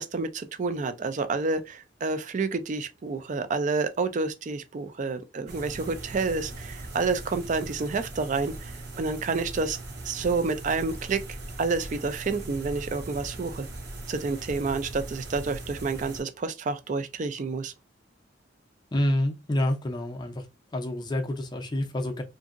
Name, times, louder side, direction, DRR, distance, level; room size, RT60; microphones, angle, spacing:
voice 1, 0.0-9.8 10.0-11.2 11.6-13.7 14.1-17.7, right 4 dB, 40° right, 0.4 m, -29 dB
sound 1, 5.5-16.2, right 2 dB, 55° right, 0.9 m, -40 dB
voice 2, 18.9-20.4 20.7-22.2, left 1 dB, 20° left, 0.5 m, -28 dB
2.8 x 2.6 x 2.5 m
head